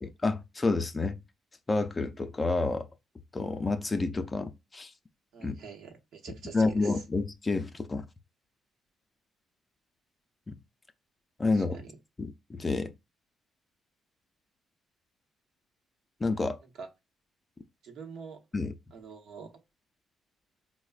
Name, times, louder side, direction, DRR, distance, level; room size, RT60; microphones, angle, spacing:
voice 1, 0.0-1.2 1.7-2.9 3.3-4.9 5.4-5.6 6.5-8.1 10.5-10.6 11.4-11.8 12.2-12.9 16.2-16.6 18.5-18.7, left 3 dB, 25° left, 0.4 m, -29 dB
voice 2, 5.3-7.0 11.5-11.9 16.8-16.9 17.8-18.4 18.9-19.5, right 5 dB, 75° right, 0.8 m, -45 dB
4.5 x 2.1 x 2.3 m
cardioid pair, 90°, 0 cm